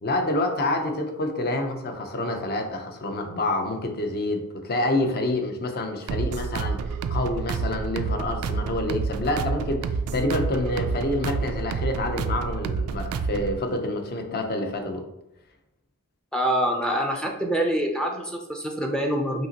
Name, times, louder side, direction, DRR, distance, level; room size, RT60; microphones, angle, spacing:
voice 1, 0.0-15.0, left 2 dB, 45° left, 4 dB, 0.6 m, -27 dB
sound 1, 6.1-13.6, right 5 dB, 70° right, 0.3 m, -29 dB
voice 2, 16.3-19.5, right 1 dB, 5° left, 0 dB, 0.4 m, -25 dB
5.3 x 2.9 x 2.8 m, 0.90 s
head